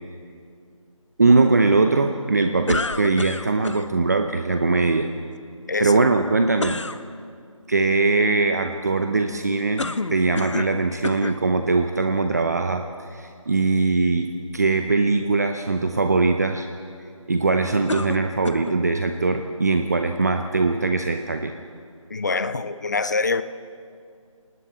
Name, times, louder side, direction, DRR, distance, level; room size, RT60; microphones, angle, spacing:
voice 1, 1.2-5.1 5.8-6.8 7.7-16.7 17.3-21.5, right 3 dB, 30° right, 7 dB, 0.8 m, -21 dB
sound 1, 2.7-3.9 6.6-7.0 9.8-10.8 11.0-11.4 12.2-12.3 17.9-18.8, left 3 dB, 60° left, 1.0 m, -29 dB
voice 2, 22.1-23.4, left 4 dB, 30° left, 13 dB, 0.7 m, -24 dB
27.0 x 19.5 x 7.6 m, 2.4 s
figure-of-eight pair, 160°, 18 cm